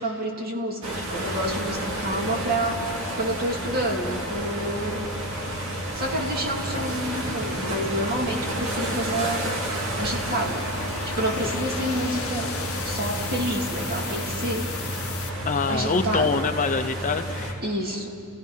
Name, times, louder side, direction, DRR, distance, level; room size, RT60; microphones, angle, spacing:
voice 1, 0.0-2.9 3.1-5.1 5.9-9.5 10.0-10.7 11.0-12.6 12.8-14.7 15.7-16.4 17.6-18.3, right 1 dB, 45° right, 0 dB, 2.5 m, -29 dB
sound 1, 0.8-17.5, right 1 dB, 65° right, 2.6 m, -30 dB
sound 2, 10.0-15.3, left 9 dB, 75° left, 0.8 m, -37 dB
sound 3, 11.4-13.4, left 1 dB, 5° left, 1.5 m, -43 dB
voice 2, 15.4-17.6, left 4 dB, 35° left, 9 dB, 0.6 m, -25 dB
29.5 x 16.0 x 5.6 m, 2.5 s
head